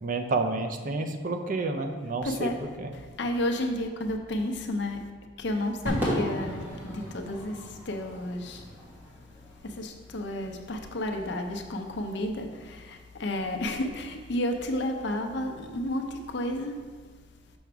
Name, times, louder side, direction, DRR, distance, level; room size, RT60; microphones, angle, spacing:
voice 1, 0.0-2.5 2.8-2.9, right 3 dB, 45° right, 5 dB, 0.5 m, -29 dB
voice 2, 2.2-2.6 2.9-5.0 5.4-8.7 9.6-16.8, left 1 dB, 70° left, 4 dB, 0.7 m, -32 dB
Crowd / Fireworks, 5.9-10.3, equal, 10° right, 1.8 m, -35 dB
6.2 x 5.9 x 3.4 m, 1.5 s
head